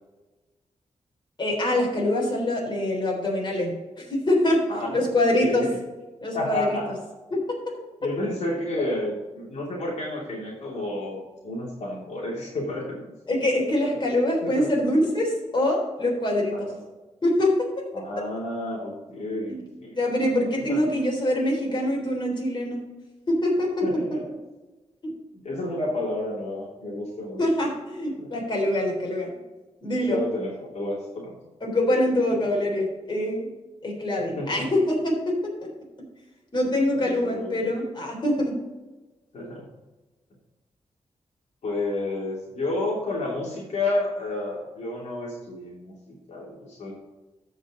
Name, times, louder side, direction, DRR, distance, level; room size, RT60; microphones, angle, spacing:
voice 1, 1.4-4.6 4.9-5.7 6.2-6.8 7.3-7.4 13.3-16.7 17.2-17.5 19.5-19.6 19.9-22.8 23.3-23.7 25.0-25.1 27.4-29.3 29.8-30.2 31.6-33.5 33.8-35.4 36.5-38.5, left 1 dB, 40° left, -2 dB, 3.6 m, -24 dB
voice 2, 4.7-5.0 5.4-5.7 6.3-7.0 8.0-13.0 14.4-14.7 16.5-16.8 17.9-20.0 20.7-20.9 23.8-24.2 25.3-27.4 28.2-28.5 30.1-31.3 32.3-32.4 34.4-34.7 37.0-37.5 39.3-39.7 41.6-46.9, left 2 dB, 70° left, -4 dB, 2.9 m, -31 dB
14.0 x 5.4 x 3.8 m, 1.2 s
wide cardioid pair, 105°, 12 cm